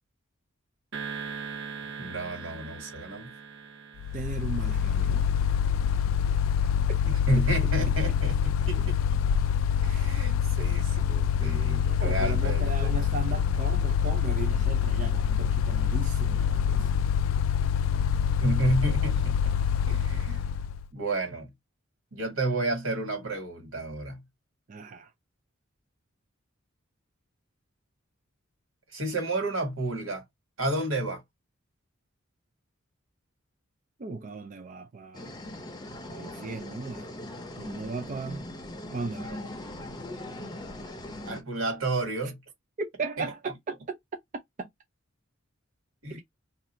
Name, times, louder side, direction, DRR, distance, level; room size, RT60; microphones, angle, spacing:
sound 1, 0.9-5.4, right 6 dB, 65° right, 0.9 m, -41 dB
voice 1, 2.0-3.3 7.0-8.9 9.8-13.0 18.3-19.5 19.9-20.4 20.9-21.5 22.1-24.2 28.9-30.2 30.6-31.2 41.2-42.4 46.0-46.2, right 1 dB, 85° right, 1.8 m, -31 dB
Mechanical fan, 4.0-20.9, left 8 dB, 70° left, 0.3 m, -26 dB
voice 2, 4.1-5.2 7.4-7.9 9.9-10.1 11.8-16.9 24.7-25.1 34.0-35.3 36.1-37.1 37.6-38.5 38.9-39.3 42.8-44.0 44.6-44.7 46.1-46.2, right 4 dB, 40° right, 0.4 m, -37 dB
sound 2, 35.1-41.4, left 1 dB, 20° left, 0.7 m, -40 dB
2.7 x 2.4 x 4.2 m
head